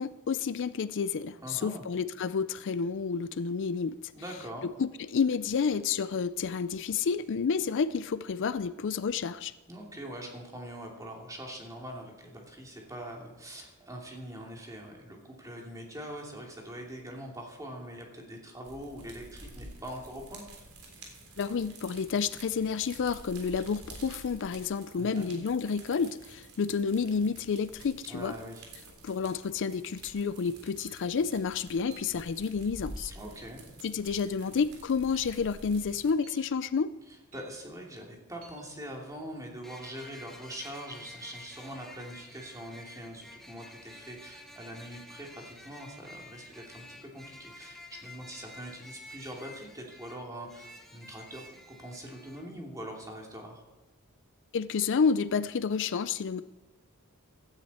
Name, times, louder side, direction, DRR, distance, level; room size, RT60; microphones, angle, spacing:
voice 1, 0.0-4.1 4.6-9.5 21.4-28.3 29.0-33.1 33.8-36.9 54.5-56.4, left 5 dB, 55° left, 14 dB, 0.4 m, -30 dB
voice 2, 1.4-1.8 4.1-4.6 9.7-20.4 25.0-25.3 28.0-28.6 33.1-33.6 37.3-53.6, equal, 15° right, -1 dB, 2.8 m, -43 dB
sound 1, 18.6-36.1, right 2 dB, 75° right, 3.5 m, -49 dB
sound 2, 30.8-31.0 31.9-32.1 33.0-33.2 34.0-34.3 35.1-35.3 36.2-36.4 37.3-37.6 38.4-38.6, right 5 dB, 40° right, 3.8 m, -53 dB
sound 3, 39.6-52.4, left 1 dB, ahead, 1.6 m, -50 dB
16.5 x 12.5 x 4.3 m, 1.1 s
head